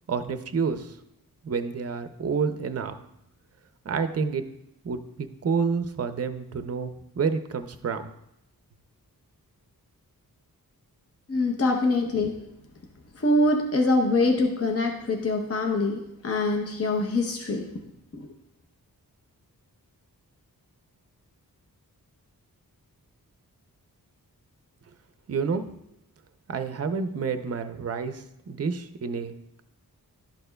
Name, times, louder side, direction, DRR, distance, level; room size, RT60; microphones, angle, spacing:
voice 1, 0.1-1.0 1.4-3.0 3.8-4.5 4.8-8.1 25.3-25.7 26.5-29.6, right 5 dB, 45° right, 9 dB, 0.5 m, -29 dB
voice 2, 11.3-12.3 13.2-17.7 18.1-18.3, left 2 dB, 40° left, 2 dB, 0.8 m, -24 dB
11.5 x 6.5 x 2.2 m, 0.81 s
wide cardioid pair, 120°, 36 cm